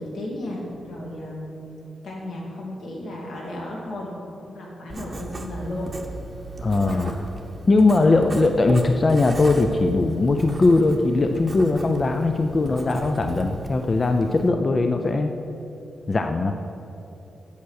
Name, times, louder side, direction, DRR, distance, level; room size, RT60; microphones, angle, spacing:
voice 1, 0.0-1.8 2.0-5.9 6.9-7.2 8.0-8.2, left 1 dB, 75° left, -2 dB, 2.3 m, -34 dB
Writing, 4.9-14.5, right 2 dB, 25° right, 0.9 m, -37 dB
voice 2, 6.6-7.1 7.7-15.3 16.1-16.6, left 3 dB, 25° left, 5 dB, 0.4 m, -20 dB
8.4 x 7.6 x 6.4 m, 2.9 s
wide cardioid pair, 170°, 0 cm